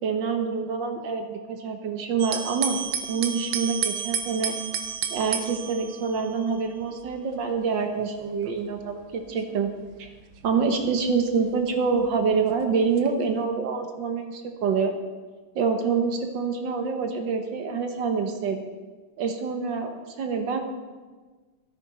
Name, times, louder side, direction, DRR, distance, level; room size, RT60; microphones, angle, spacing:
voice 1, 0.0-2.8 3.1-4.5 5.1-9.7 10.0-10.1 10.4-14.9 15.5-18.6 19.2-20.6, right 5 dB, 65° right, 5 dB, 1.6 m, -26 dB
sound 1, 2.2-12.3 13.0-13.4, right 8 dB, 80° right, 1.5 m, -33 dB
13.0 x 10.0 x 4.2 m, 1.4 s
omnidirectional pair, 2.3 m